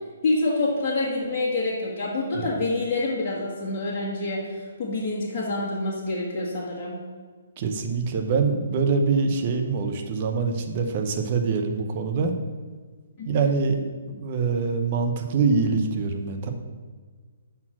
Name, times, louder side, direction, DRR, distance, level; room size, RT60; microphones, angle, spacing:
voice 1, 0.2-7.0 13.2-13.5, left 2 dB, 30° left, -7 dB, 1.5 m, -27 dB
voice 2, 7.6-12.3 13.3-13.8 14.1-16.5, right 4 dB, 40° right, 5 dB, 0.8 m, -24 dB
5.6 x 4.5 x 6.0 m, 1.5 s
hypercardioid pair, 140°, 0 cm